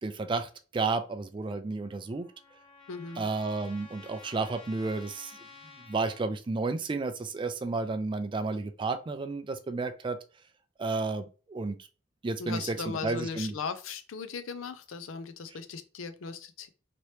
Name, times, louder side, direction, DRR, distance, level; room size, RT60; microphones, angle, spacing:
voice 1, 0.0-2.3 3.2-5.3 5.9-10.2 10.8-11.9 12.2-12.8 13.0-13.5, right 3 dB, 25° right, 8 dB, 0.3 m, -32 dB
Trumpet, 1.8-6.3, left 4 dB, 30° left, 0.6 m, -52 dB
voice 2, 2.9-3.3 12.4-16.7, left 5 dB, 85° left, 11 dB, 0.5 m, -38 dB
2.9 x 2.8 x 3.1 m, 0.36 s
head